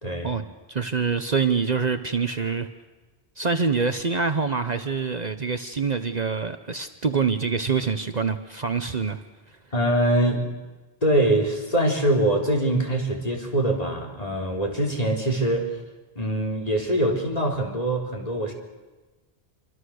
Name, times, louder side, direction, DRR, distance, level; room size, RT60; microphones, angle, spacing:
voice 1, 0.0-0.3 9.7-10.5 11.0-15.7 16.1-18.5, right 1 dB, 40° left, 1 dB, 4.0 m, -23 dB
voice 2, 0.7-2.7 3.4-9.2 9.5-9.6, right 5 dB, 45° right, 8 dB, 1.0 m, -25 dB
27.0 x 24.5 x 6.5 m, 1.2 s
omnidirectional pair, 1.1 m